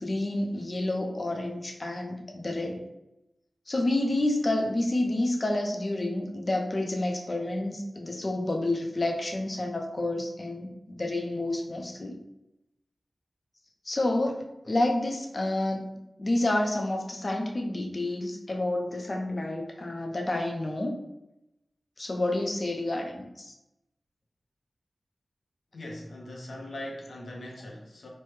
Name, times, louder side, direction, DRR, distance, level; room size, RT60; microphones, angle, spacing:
voice 1, 0.0-2.8 3.7-12.2 13.9-15.8 16.2-21.0 22.0-23.5, left 1 dB, 40° left, 1 dB, 0.5 m, -29 dB
voice 2, 25.7-28.1, left 1 dB, 75° left, 0 dB, 0.7 m, -40 dB
3.1 x 2.1 x 3.2 m, 0.90 s
wide cardioid pair, 105°, 0 cm